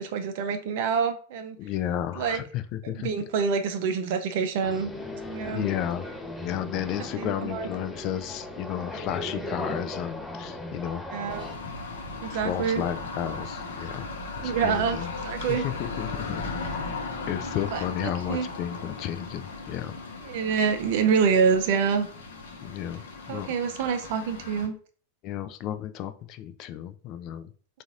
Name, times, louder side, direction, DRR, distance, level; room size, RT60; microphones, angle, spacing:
voice 1, 0.0-1.6 2.2-2.4 2.8-4.9 5.2-5.7 7.2-7.7 11.1-11.4 12.2-12.8 14.4-15.0 15.2-15.6 17.7-18.5 20.2-22.1 23.3-24.7, right 6 dB, 50° right, 7 dB, 0.5 m, -26 dB
voice 2, 1.6-3.1 5.5-6.1 6.4-11.0 12.3-14.1 14.4-15.1 15.5-16.4 17.3-20.0 22.6-23.0 23.3-23.5 23.8-24.0 25.2-27.5, left 11 dB, 40° left, 11 dB, 0.3 m, -33 dB
sound 1, 4.6-11.5, left 1 dB, 10° left, 1.1 m, -37 dB
sound 2, 11.3-24.7, left 3 dB, 60° left, 0.7 m, -37 dB
3.9 x 2.5 x 3.7 m, 0.43 s
figure-of-eight pair, 90°, 0 cm